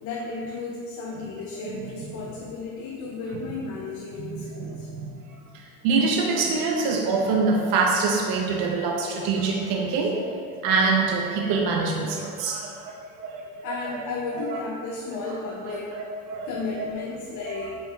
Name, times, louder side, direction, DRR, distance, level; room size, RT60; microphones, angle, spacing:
voice 1, 0.0-4.9 13.6-15.9 16.4-17.8, left 3 dB, 45° left, -2 dB, 0.6 m, -33 dB
voice 2, 4.2-13.0 13.2-13.5 13.9-14.0 14.4-14.6 15.2-15.4 15.7-16.9 17.5-17.7, right 4 dB, 55° right, 1 dB, 0.6 m, -26 dB
4.5 x 3.0 x 3.3 m, 2.2 s
supercardioid pair, 105°, 43 cm